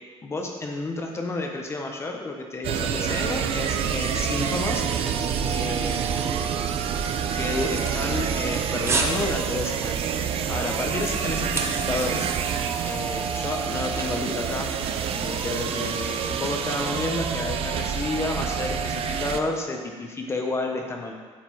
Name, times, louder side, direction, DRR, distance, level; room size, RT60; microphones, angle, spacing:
voice 1, 0.2-4.8 5.5-6.3 7.3-10.0 10.5-12.3 12.8-14.7 15.1-21.1, left 2 dB, 25° left, 2 dB, 0.8 m, -31 dB
sound 1, 2.6-19.4, right 7 dB, 55° right, 0.6 m, -27 dB
sound 2, 7.8-8.5 8.9-9.2 9.6-9.8 10.3-12.1 12.3-12.4, right 3 dB, 25° right, 0.9 m, -29 dB
8.3 x 6.6 x 4.6 m, 1.5 s
cardioid pair, 135°, 11 cm